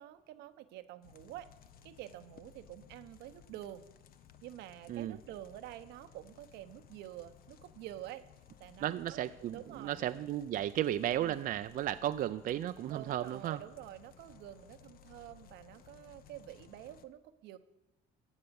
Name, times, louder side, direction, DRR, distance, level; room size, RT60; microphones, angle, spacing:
voice 1, 0.0-1.5 1.8-3.8 4.4-8.2 8.6-9.2 9.5-10.2 11.2-11.4 12.9-17.6, right 13 dB, 85° right, 9 dB, 1.0 m, -48 dB
sound 1, 1.0-17.1, left 8 dB, 60° left, 0.9 m, -59 dB
voice 2, 8.8-13.6, right 12 dB, 55° right, 10 dB, 0.5 m, -34 dB
15.5 x 8.3 x 7.0 m, 1.0 s
cardioid pair, 110°, 17 cm